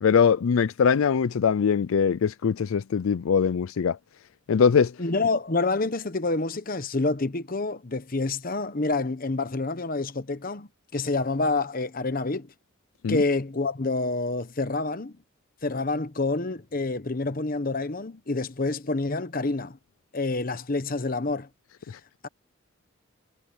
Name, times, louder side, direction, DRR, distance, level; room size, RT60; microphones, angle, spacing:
voice 1, 0.0-4.0 4.5-4.9 13.0-13.2 21.9-22.0, left 6 dB, 75° left, 0.4 m, -22 dB
voice 2, 5.0-12.5 13.1-15.2 15.6-19.8 20.1-21.5, left 3 dB, 40° left, 1.0 m, -28 dB
head